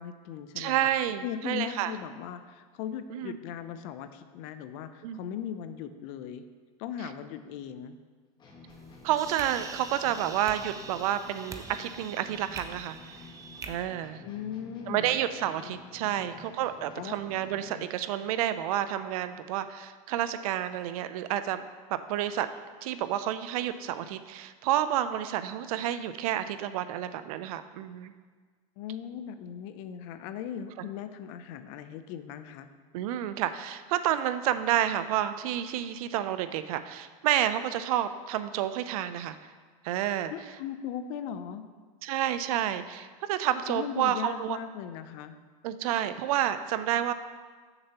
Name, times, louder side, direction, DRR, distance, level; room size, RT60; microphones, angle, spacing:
voice 1, 0.0-0.9 1.2-6.5 6.8-8.0 14.2-15.2 15.6-15.7 16.0-16.4 17.0-17.2 17.6-17.9 28.8-32.7 40.3-41.7 43.7-45.4, left 9 dB, 60° left, 10 dB, 0.5 m, -38 dB
voice 2, 0.6-1.9 3.1-3.4 5.0-5.2 9.0-13.0 13.7-14.2 14.9-21.6 21.9-22.5 22.8-28.1 30.8-30.9 32.9-39.5 39.8-40.3 42.0-44.6 45.6-47.1, right 11 dB, 75° right, 12 dB, 0.5 m, -30 dB
sound 1, 8.4-17.8, left 3 dB, 25° left, 1.3 m, -51 dB
sound 2, 8.7-13.7, right 4 dB, 20° right, 0.5 m, -44 dB
7.9 x 6.7 x 2.9 m, 1.5 s
supercardioid pair, 120°, 19 cm